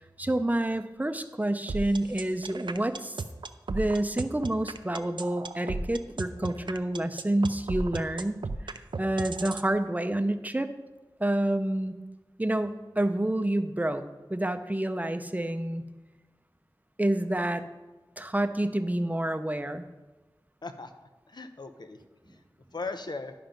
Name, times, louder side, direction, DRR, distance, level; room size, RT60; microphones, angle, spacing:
voice 1, 0.2-3.2 3.7-8.4 8.7-10.7 11.2-11.9 12.4-14.0 14.3-15.8 17.0-17.6 18.2-19.9, right 1 dB, 20° right, 9 dB, 0.6 m, -28 dB
sound 1, 1.7-9.7, right 3 dB, 75° right, 0.5 m, -34 dB
voice 2, 20.6-22.0 22.2-22.4 22.7-23.3, left 3 dB, 60° left, 8 dB, 0.7 m, -38 dB
11.0 x 5.8 x 5.2 m, 1.2 s
wide cardioid pair, 60°, 8 cm